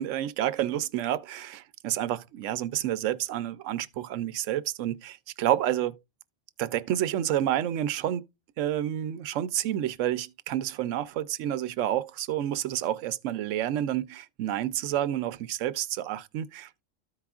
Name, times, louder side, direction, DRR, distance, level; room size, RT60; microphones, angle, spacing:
voice 1, 0.0-6.0 6.6-8.2 8.6-16.8, right 12 dB, 90° right, 0.9 m, -29 dB
13.5 x 4.8 x 2.3 m
omnidirectional pair, 1.3 m